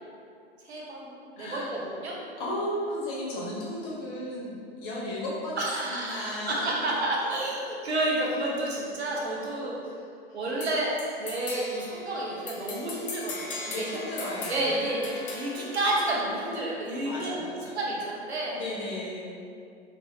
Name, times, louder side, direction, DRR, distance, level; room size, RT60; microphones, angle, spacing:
voice 1, 0.6-2.2 5.6-9.9 10.3-10.9 11.2-13.9 14.5-18.7, right 1 dB, 85° right, -4 dB, 0.8 m, -30 dB
voice 2, 1.4-1.7 2.1-7.4 13.6-14.6 17.0-17.8 18.5-19.4, left 1 dB, 50° left, -6 dB, 1.1 m, -35 dB
sound 1, 10.6-16.6, left 3 dB, 25° left, 0.5 m, -40 dB
3.4 x 2.6 x 2.7 m, 2.4 s
figure-of-eight pair, 95°, 32 cm